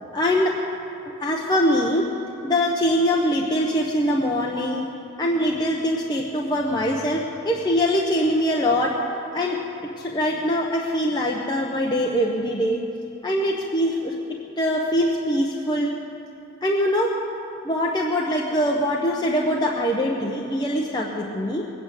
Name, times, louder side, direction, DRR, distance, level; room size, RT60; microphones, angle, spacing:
voice 1, 0.1-0.6 1.0-2.1 2.4-4.9 5.2-9.0 9.3-9.6 10.0-12.8 13.2-15.9 16.6-17.2 17.6-21.7, equal, 20° left, -2 dB, 0.9 m, -23 dB
19.5 x 8.7 x 8.2 m, 2.9 s
head